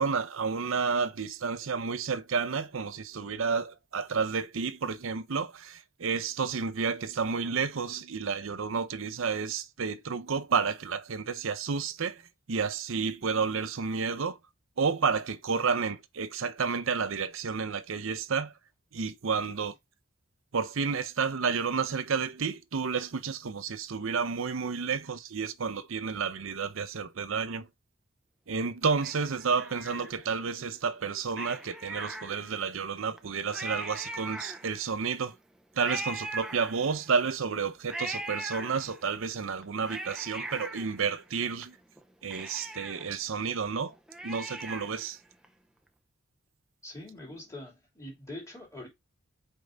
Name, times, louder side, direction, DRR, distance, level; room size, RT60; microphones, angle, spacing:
voice 1, 0.0-12.2 12.5-14.4 14.8-18.5 18.9-19.8 20.5-27.7 28.5-35.4 35.8-41.8 42.2-43.9 44.2-45.2, right 5 dB, 70° right, 0.6 m, -31 dB
Cat, 29.0-30.5 31.3-32.7 33.2-33.3 33.5-35.0 35.8-37.2 37.9-39.2 39.6-41.6 42.0-42.1 42.3-45.1 45.4-45.5, right 2 dB, 5° right, 0.5 m, -40 dB
voice 2, 46.8-48.9, left 1 dB, 15° left, 2.8 m, -43 dB
5.2 x 4.7 x 3.9 m
head